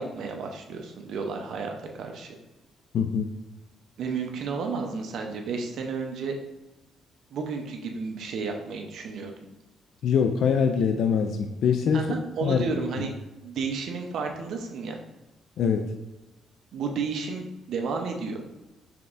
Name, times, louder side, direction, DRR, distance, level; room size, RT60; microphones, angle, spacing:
voice 1, 0.0-2.3 4.0-6.4 7.3-9.3 11.9-13.1 13.4-15.0 16.7-18.4, right 4 dB, 70° right, 3 dB, 0.7 m, -32 dB
voice 2, 2.9-3.3 10.0-12.1 12.4-12.6 15.6-15.9, left 6 dB, 70° left, 5 dB, 0.3 m, -23 dB
6.0 x 3.4 x 2.5 m, 1.0 s
cardioid pair, 90°, 0 cm